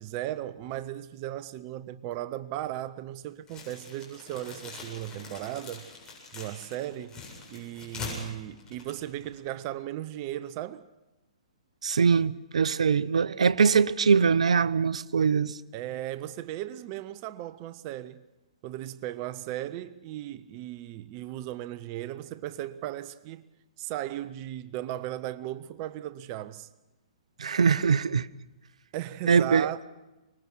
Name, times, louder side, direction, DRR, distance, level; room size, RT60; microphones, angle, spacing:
voice 1, 0.0-5.8 6.3-7.2 7.5-10.9 15.7-18.2 18.6-23.4 23.8-26.7 28.9-29.8, right 13 dB, 35° right, 0.7 m, -36 dB
sound 1, 3.5-9.6, left 4 dB, 20° left, 7.9 m, -43 dB
voice 2, 11.8-15.6 27.4-28.3 29.3-29.7, right 6 dB, 75° right, 0.7 m, -22 dB
24.0 x 20.5 x 6.2 m
hypercardioid pair, 130°, 4 cm